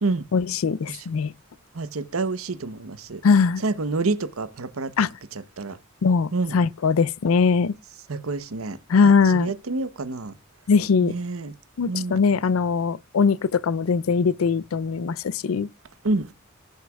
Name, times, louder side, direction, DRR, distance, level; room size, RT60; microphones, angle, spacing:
voice 1, 0.3-1.3 3.2-3.6 5.0-5.1 6.0-7.7 8.9-9.5 10.7-11.1 11.8-15.7, left 5 dB, 85° left, 0.4 m, -21 dB
voice 2, 1.7-3.2 3.6-4.9 5.3-5.8 6.3-6.6 8.1-8.8 9.0-10.3 11.0-11.5 11.8-12.2 16.0-16.3, right 3 dB, 85° right, 0.9 m, -28 dB
19.5 x 6.6 x 2.3 m
head